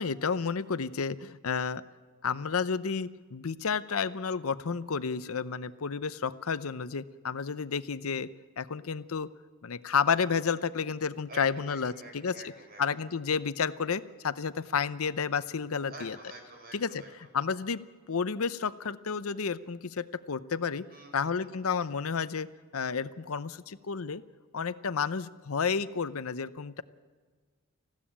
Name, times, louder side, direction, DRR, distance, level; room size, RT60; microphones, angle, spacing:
voice 1, 0.0-1.8 2.2-8.3 8.6-9.3 9.6-12.4 12.8-16.2 16.7-17.0 17.3-17.8 18.1-20.8 21.1-22.5 22.7-24.2 24.5-26.8, left 6 dB, 85° left, 14 dB, 0.7 m, -31 dB
voice 2, 11.3-12.8 15.9-17.3 20.9-21.6, right 2 dB, 45° right, 2 dB, 6.1 m, -48 dB
20.0 x 15.5 x 8.8 m, 1.5 s
head